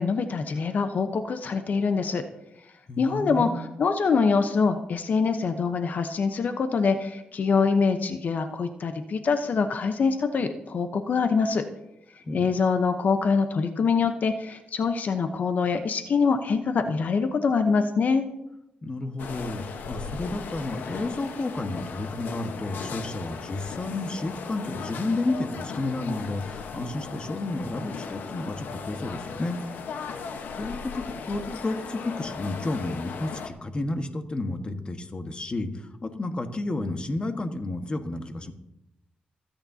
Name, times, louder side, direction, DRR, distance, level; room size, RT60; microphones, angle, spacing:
voice 1, 0.0-2.2 3.0-11.6 12.3-18.3, left 5 dB, 60° left, 8 dB, 0.9 m, -24 dB
voice 2, 2.9-3.6 12.2-12.4 18.8-29.6 30.6-38.5, left 2 dB, 35° left, 6 dB, 1.5 m, -31 dB
sound 1, 19.2-33.5, left 5 dB, 80° left, 1.2 m, -37 dB
26.5 x 8.8 x 2.8 m, 0.88 s
cardioid pair, 80°, 3 cm